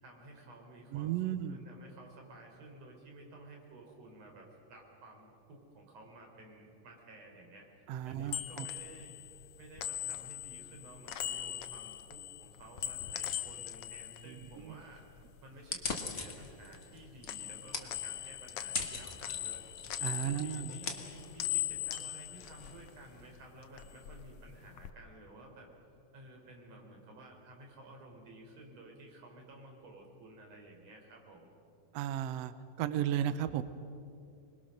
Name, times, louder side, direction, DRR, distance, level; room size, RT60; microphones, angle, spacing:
voice 1, 0.0-7.7 8.0-9.2 9.6-15.0 15.4-19.6 20.1-25.7 26.1-31.5, right 1 dB, 50° right, 1 dB, 4.8 m, -53 dB
voice 2, 0.9-1.6 7.9-8.7 14.3-14.8 20.0-20.7 31.9-33.6, right 10 dB, 85° right, 12 dB, 1.4 m, -35 dB
sound 1, 8.0-15.3 15.6-17.0 17.3-23.3 23.6-24.9, left 12 dB, 80° left, 1.3 m, -41 dB
sound 2, 15.6-23.3, left 4 dB, 45° left, 0.9 m, -43 dB
26.0 x 21.5 x 6.5 m, 2.6 s
omnidirectional pair, 3.8 m